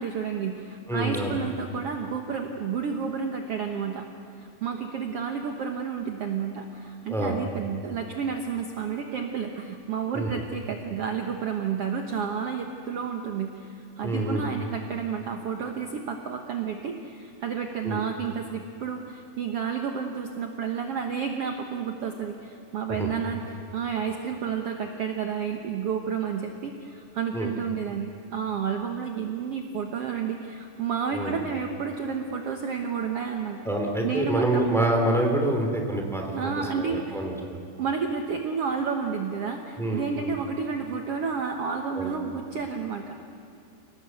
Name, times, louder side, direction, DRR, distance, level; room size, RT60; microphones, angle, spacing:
voice 1, 0.0-4.0 4.4-33.6 34.0-34.7 36.3-37.2 37.8-43.2, right 6 dB, 70° right, 4 dB, 1.4 m, -31 dB
voice 2, 0.9-1.4 7.1-7.4 10.1-10.4 14.0-14.5 17.8-18.0 22.9-23.1 27.3-27.5 31.1-31.4 33.6-37.6 39.8-40.3 41.9-42.1, right 1 dB, ahead, 2 dB, 2.5 m, -27 dB
29.0 x 18.5 x 8.0 m, 2.7 s
omnidirectional pair, 4.5 m